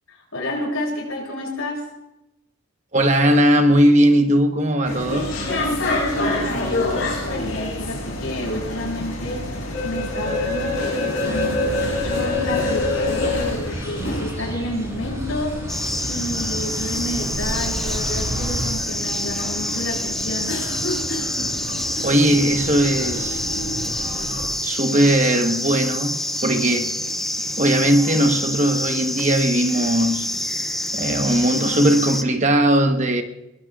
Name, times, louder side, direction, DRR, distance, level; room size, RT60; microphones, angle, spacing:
voice 1, 0.1-1.8 5.7-9.5 9.8-15.6 16.0-20.5, left 1 dB, 80° left, 7.6 m, -30 dB
voice 2, 2.9-5.4 22.0-23.4 24.6-27.0 27.6-30.3 30.9-33.2, right 1 dB, 35° right, 1.1 m, -18 dB
sound 1, 4.8-24.5, left 2 dB, 60° left, 7.7 m, -27 dB
sound 2, 11.1-18.7, equal, 15° right, 7.0 m, -32 dB
sound 3, 15.7-32.2, left 1 dB, ahead, 0.5 m, -27 dB
23.0 x 21.5 x 2.4 m
head